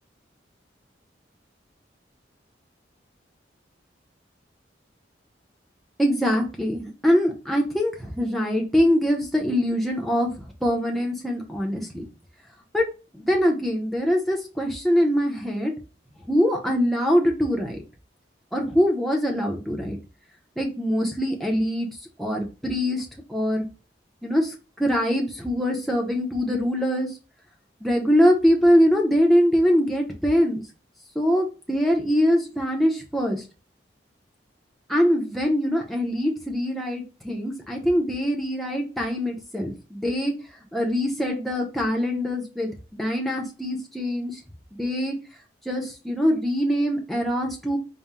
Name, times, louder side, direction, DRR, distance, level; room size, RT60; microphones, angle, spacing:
voice 1, 6.0-10.3 10.6-12.0 12.7-12.9 13.1-15.7 16.3-17.8 18.5-20.0 20.6-21.9 22.2-23.7 24.2-24.5 24.8-27.1 27.8-30.6 31.1-33.4 34.9-40.3 40.7-44.4 44.7-45.1 45.6-47.8, equal, ahead, 0 dB, 0.7 m, -23 dB
4.2 x 2.1 x 3.6 m, 0.33 s
head